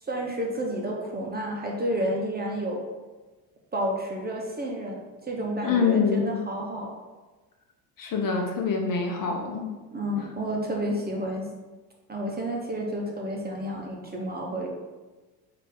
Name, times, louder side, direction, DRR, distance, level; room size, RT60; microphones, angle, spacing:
voice 1, 0.1-2.8 3.7-5.0 5.3-6.9 9.9-11.5 12.1-14.7, right 1 dB, 20° right, -1 dB, 0.9 m, -30 dB
voice 2, 5.6-6.4 8.0-9.7, left 5 dB, 40° left, 2 dB, 1.0 m, -25 dB
4.9 x 2.9 x 3.8 m, 1.2 s
hypercardioid pair, 75°, 48 cm